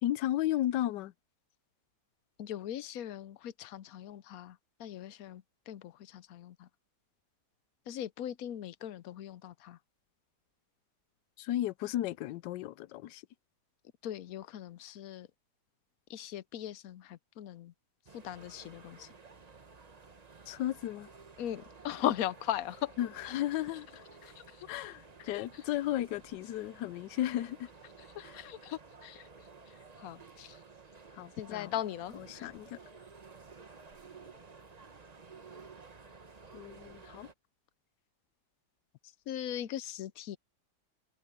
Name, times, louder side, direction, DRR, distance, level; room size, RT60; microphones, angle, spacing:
voice 1, 0.0-1.1 11.4-13.2 20.5-21.1 23.0-24.0 24.7-27.7 28.2-28.4 31.1-31.7 32.1-32.8 36.5-37.3, left 13 dB, 85° left, 1.3 m, -34 dB
voice 2, 2.4-6.7 7.9-9.8 14.0-15.3 16.1-17.7 18.1-19.1 21.4-22.9 23.2-23.4 24.2-24.8 25.3-25.5 28.1-29.3 29.7-30.6 31.4-32.5 39.3-40.4, left 11 dB, 65° left, 1.0 m, -39 dB
sound 1, 18.1-37.3, right 4 dB, 25° right, 1.0 m, -54 dB
omnidirectional pair, 1.9 m